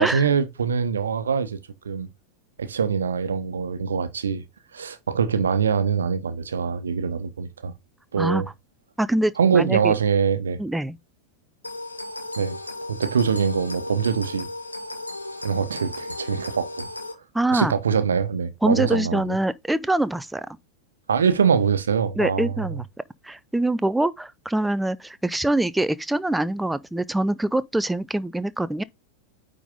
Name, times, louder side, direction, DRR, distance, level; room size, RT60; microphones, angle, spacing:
voice 1, 0.0-1.6 1.8-2.1 2.6-4.4 4.7-7.7 8.1-8.5 9.4-10.6 12.4-12.6 12.9-14.5 15.4-16.9 17.5-19.4 21.1-22.7, right 6 dB, 70° right, 1.0 m, -23 dB
voice 2, 9.0-9.9 10.6-11.0 17.3-17.7 18.6-20.6 22.2-22.9 23.2-28.8, right 1 dB, 5° right, 0.4 m, -24 dB
sound 1, 11.6-17.1, left 2 dB, 85° left, 1.2 m, -35 dB
9.2 x 4.0 x 3.7 m
figure-of-eight pair, 90°, 0 cm